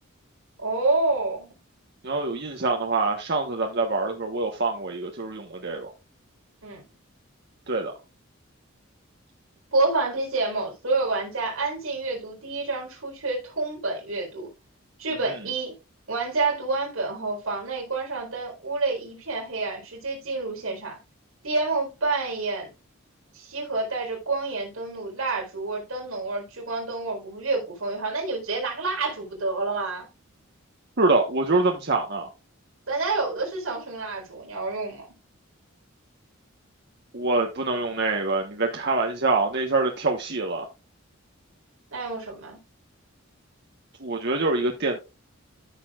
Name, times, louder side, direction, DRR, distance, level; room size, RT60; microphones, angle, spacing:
voice 1, 0.6-1.5 6.6-6.8 9.7-14.5 15.0-15.7 16.1-21.0 21.4-22.7 23.3-30.1 32.9-35.1 41.9-42.6, right 3 dB, 85° right, 4.2 m, -28 dB
voice 2, 2.0-5.9 7.7-7.9 31.0-32.3 37.1-40.7 44.0-45.0, right 3 dB, 55° right, 1.2 m, -25 dB
13.5 x 6.9 x 2.4 m
head